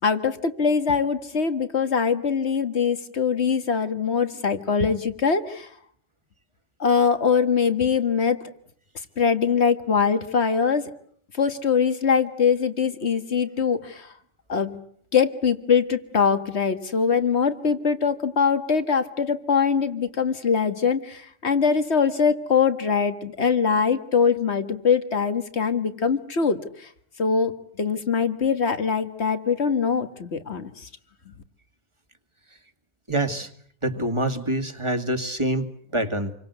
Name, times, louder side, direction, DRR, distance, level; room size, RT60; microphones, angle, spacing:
voice 1, 0.0-5.7 6.8-8.4 9.2-10.9 11.4-14.1 14.5-14.8 15.1-26.9 27.2-27.5 27.8-30.9, left 6 dB, 75° left, 9 dB, 2.0 m, -22 dB
voice 2, 33.1-33.5 33.8-36.3, right 1 dB, 25° right, 7 dB, 2.1 m, -26 dB
28.0 x 23.5 x 8.1 m, 0.64 s
omnidirectional pair, 1.1 m